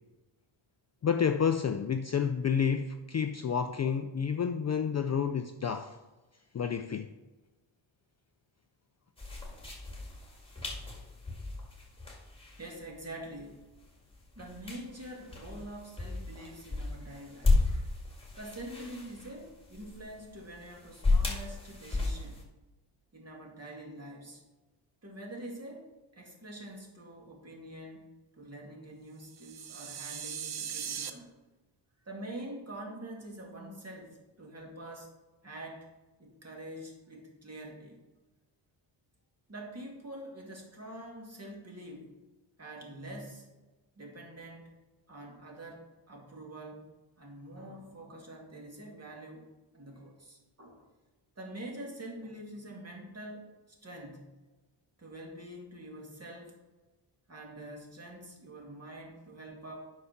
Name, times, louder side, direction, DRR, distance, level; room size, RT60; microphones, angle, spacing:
voice 1, 1.0-6.0 6.5-7.1, left 7 dB, 35° left, 0.4 m, -29 dB
sound 1, 9.2-22.4, left 3 dB, 10° left, 2.1 m, -34 dB
voice 2, 12.6-13.6 14.4-17.9 18.4-22.4 23.1-24.4 25.0-25.9 26.1-28.1 28.4-31.3 32.0-35.1 35.4-35.9 36.2-38.0 39.5-42.2 42.6-43.5 44.0-44.8 45.1-49.5 49.7-50.9 51.4-54.3 55.0-56.6 57.3-59.8, right 1 dB, 30° right, 2.2 m, -45 dB
sound 2, 29.3-31.1, right 8 dB, 55° right, 0.7 m, -39 dB
8.4 x 5.6 x 5.8 m
cardioid pair, 105°, 49 cm